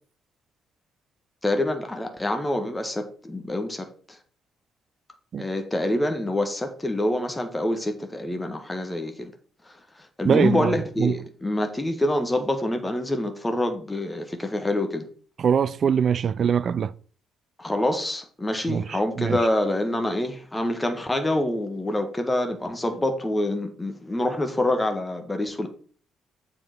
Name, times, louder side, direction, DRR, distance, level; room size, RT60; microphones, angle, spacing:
voice 1, 1.4-4.2 5.4-9.3 9.7-9.8 10.2-15.1 17.6-25.7, left 1 dB, 15° left, 1.6 m, -26 dB
voice 2, 10.2-11.1 15.4-16.9 18.7-19.4, right 7 dB, 45° right, 0.4 m, -23 dB
7.6 x 4.6 x 5.9 m
figure-of-eight pair, 45°, 0 cm